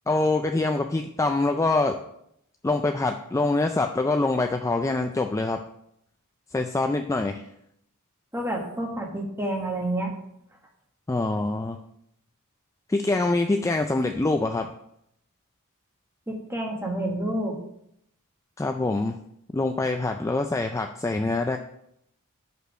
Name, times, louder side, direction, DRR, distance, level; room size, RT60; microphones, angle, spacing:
voice 1, 0.1-2.0 2.6-5.6 6.5-7.4 11.1-11.8 12.9-14.7 18.6-19.2 19.5-21.6, left 2 dB, 15° left, 5 dB, 0.3 m, -25 dB
voice 2, 8.3-10.1 16.3-17.6, right 1 dB, 10° right, 0 dB, 1.4 m, -29 dB
6.2 x 5.5 x 6.2 m, 0.75 s
head